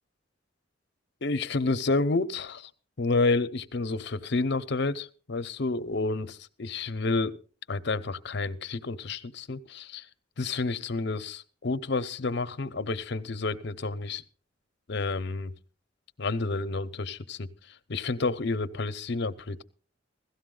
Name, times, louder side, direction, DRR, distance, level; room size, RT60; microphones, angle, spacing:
voice 1, 1.2-2.7 3.0-7.4 7.7-10.1 10.4-14.2 14.9-15.5 16.2-19.6, left 3 dB, 60° left, 0.8 m, -30 dB
16.5 x 13.0 x 3.9 m
head